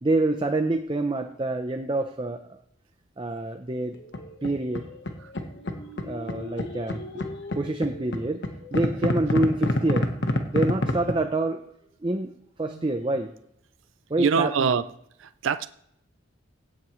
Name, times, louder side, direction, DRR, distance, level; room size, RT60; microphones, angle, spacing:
voice 1, 0.0-2.6 3.2-4.0 4.4-4.9 6.0-7.2 7.6-8.4 8.7-10.1 10.5-11.6 12.0-12.3 12.6-13.3 14.1-14.8, right 2 dB, 25° right, 0.6 m, -27 dB
sound 1, 3.9-5.1 5.3-11.1, left 1 dB, 60° left, 1.2 m, -28 dB
voice 2, 14.2-14.8 15.4-15.7, right 6 dB, 65° right, 0.4 m, -22 dB
17.0 x 7.4 x 3.1 m
head